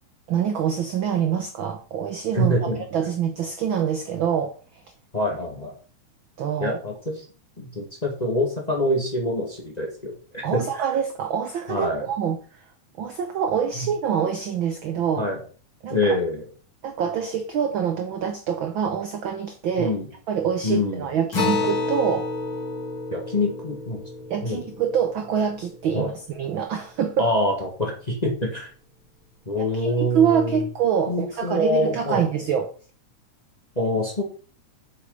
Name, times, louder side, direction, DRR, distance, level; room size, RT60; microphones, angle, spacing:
voice 1, 0.3-2.6 2.9-4.5 6.4-6.8 10.4-12.4 13.0-15.3 15.8-16.2 16.8-19.9 20.3-22.3 24.3-27.3 29.6-32.7, right 8 dB, 75° right, 6 dB, 1.1 m, -25 dB
voice 2, 2.3-2.8 5.1-5.7 6.6-7.1 7.6-10.6 11.7-12.1 13.8-13.9 15.2-15.4 15.9-16.4 19.8-20.1 20.6-21.1 23.1-24.0 24.4-24.6 25.9-26.1 27.2-28.7 29.4-30.6 31.1-32.3 33.7-34.2, left 1 dB, 15° left, 0 dB, 1.4 m, -25 dB
Acoustic guitar, 21.3-26.2, left 3 dB, 45° left, 3.3 m, -30 dB
7.4 x 6.5 x 5.2 m, 0.39 s
omnidirectional pair, 3.4 m